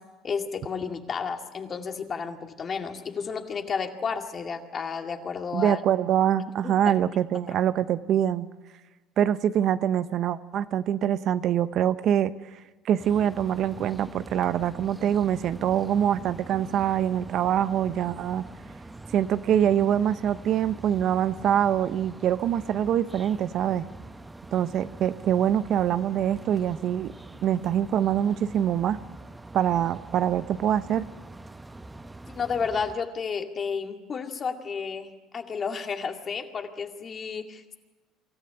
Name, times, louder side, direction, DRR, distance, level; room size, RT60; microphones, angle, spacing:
voice 1, 0.2-5.8 6.6-6.7 32.3-37.8, left 5 dB, 40° left, 4 dB, 2.2 m, -32 dB
voice 2, 5.5-8.5 9.2-12.3 12.8-18.4 19.1-23.9 24.5-27.1 27.4-29.0 29.5-31.1, right 10 dB, 55° right, 13 dB, 0.7 m, -24 dB
sound 1, 13.0-33.0, right 2 dB, 15° right, 0.9 m, -44 dB
25.0 x 14.0 x 8.8 m, 1.2 s
supercardioid pair, 90°, 0 cm